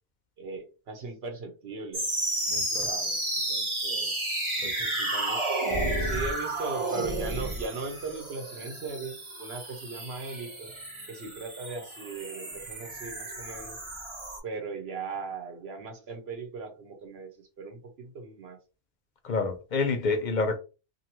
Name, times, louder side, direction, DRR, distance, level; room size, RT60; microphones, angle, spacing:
voice 1, 0.4-2.1 2.7-4.1 4.6-5.4 5.8-10.7 11.1-13.8 14.4-18.6, right 4 dB, 75° right, 1.0 m, -38 dB
sound 1, 1.9-14.4, right 1 dB, 30° right, 0.9 m, -32 dB
voice 2, 2.5-2.9 4.6-4.7 19.2-20.6, left 3 dB, 55° left, 0.6 m, -28 dB
2.7 x 2.3 x 2.9 m
omnidirectional pair, 1.1 m